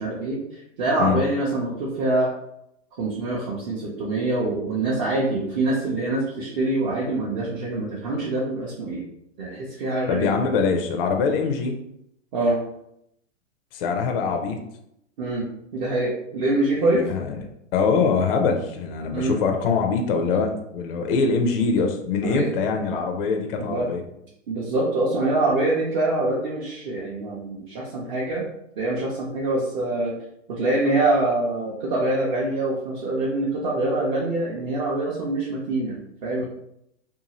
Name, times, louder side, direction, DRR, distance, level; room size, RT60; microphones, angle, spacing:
voice 1, 0.0-2.3 3.0-9.1 9.4-10.3 12.3-12.6 15.2-17.1 19.1-19.4 20.3-20.4 22.2-22.5 22.9-23.0 23.5-23.9 24.5-28.4 28.8-30.2 30.5-36.5, right 2 dB, 35° right, -4 dB, 0.6 m, -25 dB
voice 2, 10.1-11.8 13.7-14.6 16.8-17.3 17.7-24.0, left 5 dB, 45° left, 4 dB, 0.4 m, -23 dB
2.7 x 2.3 x 2.8 m, 0.79 s
hypercardioid pair, 135°, 39 cm